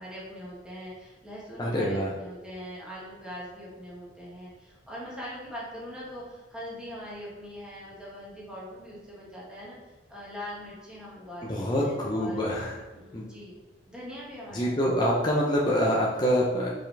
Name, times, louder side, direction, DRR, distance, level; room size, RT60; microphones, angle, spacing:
voice 1, 0.0-9.8 10.1-12.5 12.9-15.4, equal, 5° right, -7 dB, 1.9 m, -42 dB
voice 2, 1.6-2.1 11.4-12.8 13.1-13.3 14.5-16.7, equal, 25° left, -4 dB, 0.8 m, -26 dB
5.7 x 5.3 x 3.4 m, 1.2 s
head